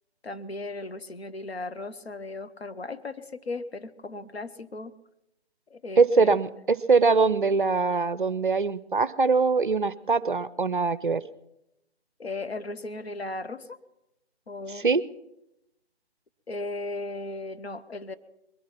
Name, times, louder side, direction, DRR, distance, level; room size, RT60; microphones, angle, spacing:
voice 1, 0.2-4.9 5.7-6.4 12.2-13.8 14.5-14.9 16.5-18.2, left 2 dB, 65° left, 9 dB, 1.1 m, -36 dB
voice 2, 6.0-11.2 14.8-15.0, right 4 dB, 50° right, 17 dB, 0.5 m, -22 dB
21.5 x 11.0 x 5.9 m, 0.87 s
figure-of-eight pair, 150°, 34 cm